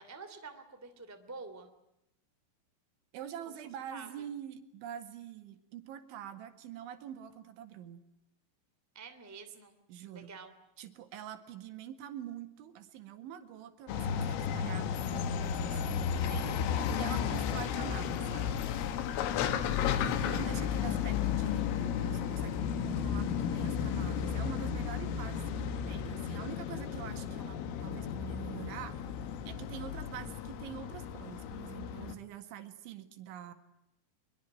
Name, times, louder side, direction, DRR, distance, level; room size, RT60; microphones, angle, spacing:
voice 1, 0.0-1.7 3.4-3.5 3.9-4.3 8.9-9.7 10.0-10.5 19.1-19.6, right 4 dB, 10° right, 6 dB, 0.9 m, -48 dB
voice 2, 3.1-8.1 9.9-10.3 10.8-18.6 20.0-29.0 29.5-33.5, right 10 dB, 70° right, 8 dB, 4.1 m, -45 dB
sound 1, 13.9-32.2, left 8 dB, 85° left, 4.3 m, -33 dB
23.5 x 23.0 x 9.1 m, 0.84 s
omnidirectional pair, 5.7 m